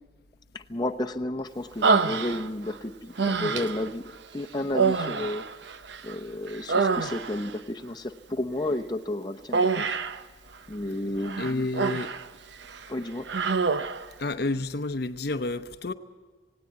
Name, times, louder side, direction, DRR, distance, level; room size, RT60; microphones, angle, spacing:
voice 1, 0.5-5.4 6.0-10.0 10.7-11.7 12.9-13.5, left 1 dB, 20° left, 0.8 m, -32 dB
Human voice, 1.8-2.7 3.2-3.9 4.7-6.1 6.5-7.5 9.5-10.2 11.2-12.3 12.6-12.8 13.3-14.1, right 4 dB, 60° right, 0.8 m, -26 dB
voice 2, 11.4-12.1 14.2-15.9, left 2 dB, 55° left, 0.8 m, -30 dB
18.5 x 17.5 x 9.4 m
head